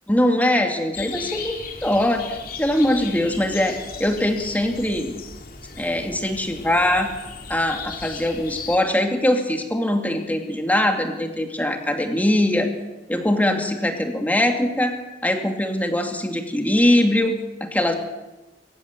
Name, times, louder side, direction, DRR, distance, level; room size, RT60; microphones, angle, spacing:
voice 1, 0.1-5.1 5.8-7.1 7.5-12.7 13.1-14.9 15.2-17.9, left 1 dB, 10° left, 4 dB, 2.5 m, -22 dB
sound 1, 0.9-8.8, left 5 dB, 55° left, 2.8 m, -37 dB
24.5 x 14.5 x 8.3 m, 1.1 s
head